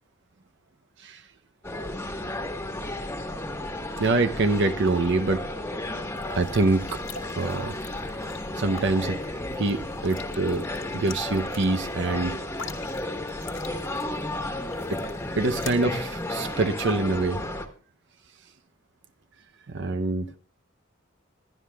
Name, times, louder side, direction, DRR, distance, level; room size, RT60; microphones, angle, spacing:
sound 1, 1.6-17.7, left 1 dB, 15° left, 1.4 m, -33 dB
voice 1, 4.0-5.4 6.4-7.0 7.4-7.8 8.6-9.2 9.6-10.7 10.9-12.4 14.9-15.0 15.4-17.4 19.7-20.3, right 3 dB, 65° right, 0.7 m, -25 dB
sound 2, 6.2-15.7, left 7 dB, 70° left, 1.8 m, -45 dB
22.0 x 11.0 x 2.3 m
head